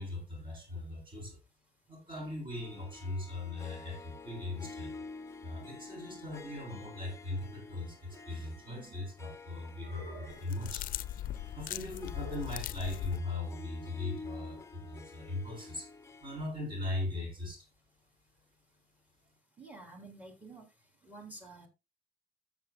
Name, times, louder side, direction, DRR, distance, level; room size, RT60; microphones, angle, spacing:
voice 1, 0.0-1.4 1.9-5.0 5.4-10.9 11.5-15.9 16.2-17.7, left 2 dB, 30° right, 4.4 m, -39 dB
Harp, 2.5-16.5, left 4 dB, 15° left, 0.9 m, -50 dB
sound 1, 8.2-9.0 9.8-10.6 12.1-12.6, right 1 dB, 70° right, 4.7 m, -50 dB
sound 2, 10.3-13.2, left 12 dB, 55° left, 0.5 m, -39 dB
voice 2, 19.6-20.7 21.0-21.7, right 2 dB, 10° right, 3.5 m, -50 dB
13.5 x 7.7 x 2.4 m
cardioid pair, 110°, 17 cm